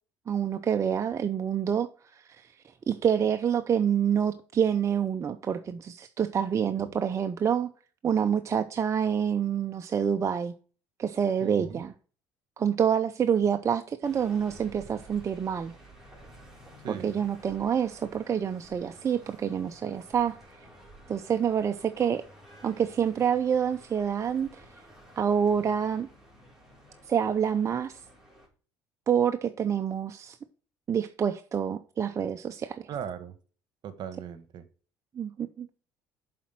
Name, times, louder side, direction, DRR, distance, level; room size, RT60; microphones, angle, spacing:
voice 1, 0.3-2.5 2.9-7.7 8.0-10.5 11.0-11.9 12.6-15.7 16.9-20.4 21.1-22.2 22.6-24.6 25.2-26.1 27.1-28.0 29.1-30.4 30.9-32.9 35.1-35.7, right 8 dB, 35° right, 0.5 m, -27 dB
voice 2, 11.4-11.9 16.8-17.3 32.9-33.3 33.8-34.6, right 8 dB, 55° right, 1.2 m, -39 dB
sound 1, 14.0-28.5, right 1 dB, 5° right, 3.2 m, -52 dB
7.1 x 4.2 x 5.7 m
supercardioid pair, 85°, 9 cm